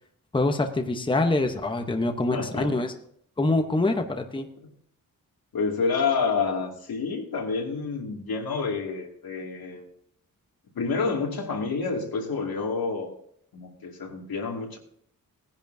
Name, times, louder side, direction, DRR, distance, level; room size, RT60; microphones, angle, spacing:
voice 1, 0.3-2.9 3.4-4.5, left 2 dB, 15° left, 5 dB, 0.9 m, -25 dB
voice 2, 2.3-2.9 3.8-3.9 5.5-9.8 10.7-13.1 13.5-14.8, left 4 dB, 90° left, 0 dB, 2.5 m, -28 dB
18.0 x 10.5 x 2.7 m, 0.66 s
wide cardioid pair, 135°, 35 cm